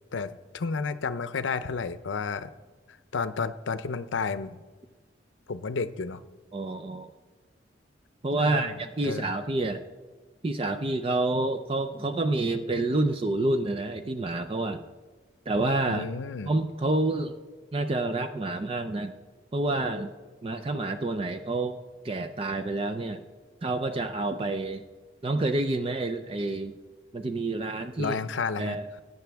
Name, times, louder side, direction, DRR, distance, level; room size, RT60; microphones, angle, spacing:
voice 1, 0.1-2.5 3.1-4.6 5.5-6.2 8.4-9.3 15.9-16.5 28.0-28.8, left 4 dB, 90° left, 13 dB, 0.6 m, -31 dB
voice 2, 6.5-7.1 8.2-9.8 10.4-14.9 15.5-16.1 16.5-17.3 17.7-19.1 19.5-20.1 20.4-21.8 22.0-23.2 23.6-24.8 25.2-26.7 27.1-28.2 28.6-28.8, right 2 dB, 30° right, 7 dB, 0.4 m, -28 dB
20.0 x 9.3 x 3.4 m, 1.3 s
head